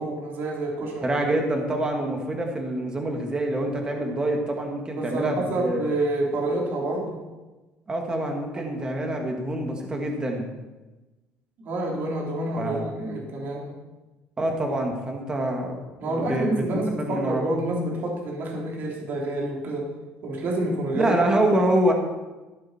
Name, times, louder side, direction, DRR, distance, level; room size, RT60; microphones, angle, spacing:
voice 1, 0.0-1.1 4.9-7.2 11.6-13.8 16.0-19.9 20.2-21.1, right 1 dB, 50° right, -2 dB, 3.5 m, -28 dB
voice 2, 1.0-5.9 7.9-10.5 12.6-12.9 14.4-16.6 17.0-17.4 20.9-21.9, right 1 dB, 20° right, 2 dB, 1.9 m, -26 dB
14.5 x 11.0 x 4.3 m, 1.1 s
cardioid pair, 145°, 4 cm